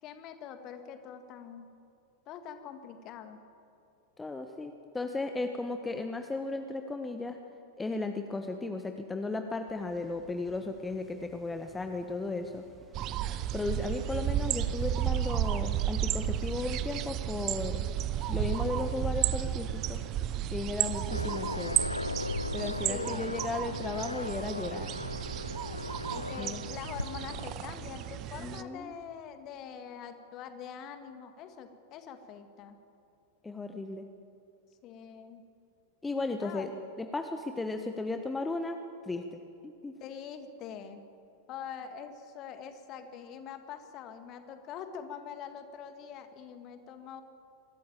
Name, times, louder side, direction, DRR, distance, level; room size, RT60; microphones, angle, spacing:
voice 1, 0.0-1.7 2.3-3.4 22.9-23.4 26.1-32.8 34.8-35.4 36.4-36.7 40.0-41.0 41.5-47.2, left 8 dB, 35° left, 8 dB, 1.9 m, -44 dB
voice 2, 4.2-7.4 7.8-12.6 13.5-17.9 18.3-20.0 20.5-21.8 22.5-24.9 26.4-26.6 28.4-28.9 33.4-34.1 36.0-36.7 37.0-39.9, left 3 dB, 10° left, 6 dB, 1.1 m, -35 dB
sound 1, 9.7-26.5, right 1 dB, 10° right, 2.9 m, -57 dB
sound 2, 12.9-28.6, right 11 dB, 35° right, 0.8 m, -33 dB
Aircraft, 21.1-28.2, left 2 dB, 85° left, 0.5 m, -37 dB
24.0 x 13.5 x 9.0 m, 2.6 s
figure-of-eight pair, 90°, 0 cm